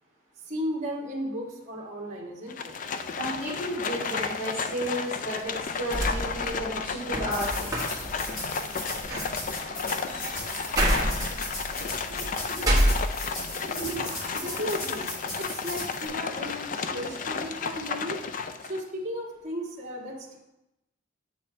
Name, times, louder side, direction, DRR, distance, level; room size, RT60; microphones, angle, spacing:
voice 1, 0.5-2.7 14.3-15.1 15.4-18.2 18.6-20.4, equal, 35° right, -4 dB, 1.5 m, -35 dB
Livestock farm animals working animals, 2.5-18.9, left 5 dB, 40° left, 0.4 m, -33 dB
voice 2, 3.1-7.9 12.1-12.9 13.6-14.0 16.8-16.9, right 1 dB, 55° left, -11 dB, 2.8 m, -33 dB
sound 1, 5.9-13.6 14.0-14.8, right 1 dB, 20° right, 1.4 m, -30 dB
sound 2, 7.3-16.1, left 1 dB, 85° left, 2.7 m, -38 dB
7.7 x 6.9 x 3.3 m, 0.90 s
head